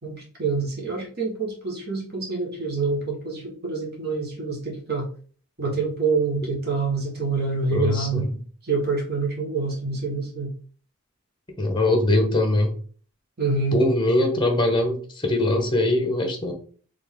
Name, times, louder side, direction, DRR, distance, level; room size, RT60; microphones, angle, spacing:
voice 1, 0.0-5.1 5.6-8.3 8.6-10.5 13.4-13.8, right 4 dB, 45° right, -1 dB, 1.3 m, -26 dB
voice 2, 7.7-8.2 11.6-12.7 13.7-16.5, left 1 dB, 20° left, 4 dB, 1.0 m, -22 dB
4.2 x 3.4 x 3.6 m, 0.43 s
head